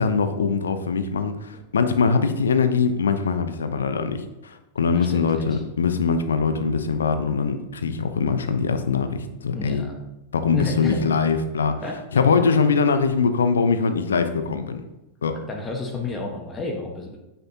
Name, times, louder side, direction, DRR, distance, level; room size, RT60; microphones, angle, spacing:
voice 1, 0.0-9.8 10.3-11.8 12.1-14.8 15.2-15.3, left 5 dB, 70° left, 8 dB, 0.8 m, -22 dB
voice 2, 4.9-5.6 9.5-10.0 10.5-11.1 11.8-11.9 15.5-17.2, left 3 dB, 20° left, 0 dB, 1.3 m, -31 dB
9.5 x 6.9 x 2.9 m, 0.95 s
figure-of-eight pair, 90°, 0 cm